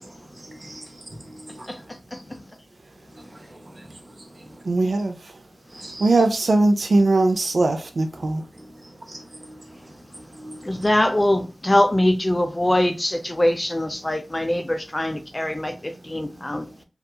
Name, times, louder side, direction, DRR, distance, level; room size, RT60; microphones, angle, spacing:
voice 1, 0.0-1.9 3.1-4.6 5.7-6.2 8.1-10.9, right 1 dB, 50° right, 0.7 m, -43 dB
voice 2, 4.7-5.2 6.0-8.4, right 2 dB, 85° right, 0.3 m, -20 dB
voice 3, 10.6-16.7, left 1 dB, 25° left, 0.3 m, -22 dB
2.7 x 2.4 x 2.3 m
wide cardioid pair, 50°, 0 cm